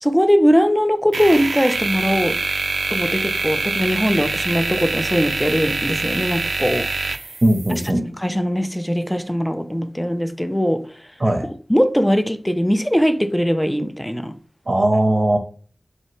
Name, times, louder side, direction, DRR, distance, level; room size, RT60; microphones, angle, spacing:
voice 1, 0.0-2.4 2.9-6.9 8.2-10.9 11.4-14.4, equal, 5° left, 0.4 m, -20 dB
sound 1, 1.1-7.9, right 3 dB, 75° right, 0.3 m, -25 dB
voice 2, 7.4-8.0 11.2-11.5 14.7-15.4, right 1 dB, 35° right, 0.7 m, -18 dB
4.1 x 3.1 x 3.0 m
wide cardioid pair, 70°, 0 cm